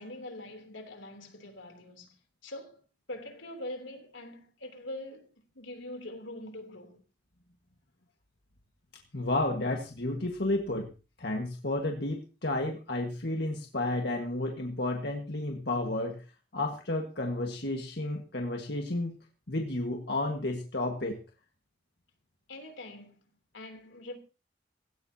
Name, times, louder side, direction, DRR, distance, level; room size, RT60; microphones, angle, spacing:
voice 1, 0.0-2.1 2.4-5.3 5.5-7.0 22.5-23.2 23.5-24.2, left 1 dB, 80° left, 3.2 m, -43 dB
voice 2, 9.1-10.9 11.2-16.2 16.5-19.2 19.5-21.2, left 2 dB, 60° left, 1.7 m, -32 dB
17.5 x 16.5 x 2.9 m
head